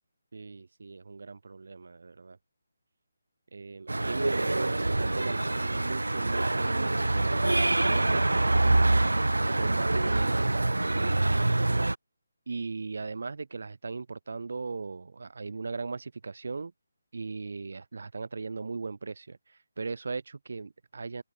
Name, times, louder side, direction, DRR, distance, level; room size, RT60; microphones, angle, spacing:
voice 1, 0.3-2.4 3.5-9.1 9.5-11.2 12.5-16.7 17.1-21.2, right 4 dB, 65° right, 0.7 m, -38 dB
sound 1, 3.9-11.9, right 2 dB, 85° right, 0.3 m, -25 dB
Crow, 5.2-11.6, left 4 dB, 65° left, 4.8 m, -57 dB
figure-of-eight pair, 150°, 0 cm